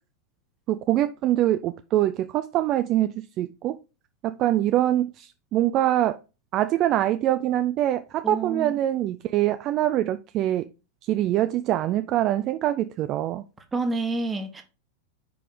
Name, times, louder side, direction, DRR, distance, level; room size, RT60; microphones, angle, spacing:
voice 1, 0.7-3.8 4.2-6.2 6.5-10.7 11.0-13.4, right 13 dB, 35° right, 0.3 m, -24 dB
voice 2, 8.2-8.8 13.7-14.6, right 3 dB, 15° right, 1.1 m, -28 dB
4.8 x 4.7 x 5.1 m
figure-of-eight pair, 90°, 0 cm